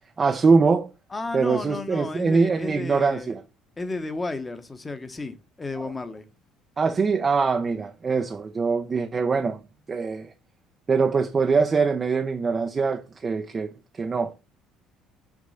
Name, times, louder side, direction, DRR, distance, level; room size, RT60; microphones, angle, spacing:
voice 1, 0.2-0.9 1.3-3.4 5.8-5.9 6.8-9.6 9.9-10.3 10.9-13.7 14.0-14.3, right 4 dB, 25° right, 0.6 m, -23 dB
voice 2, 1.1-3.3 3.8-6.3, left 3 dB, 15° left, 1.1 m, -33 dB
6.2 x 3.5 x 5.6 m
cardioid pair, 125°, 0 cm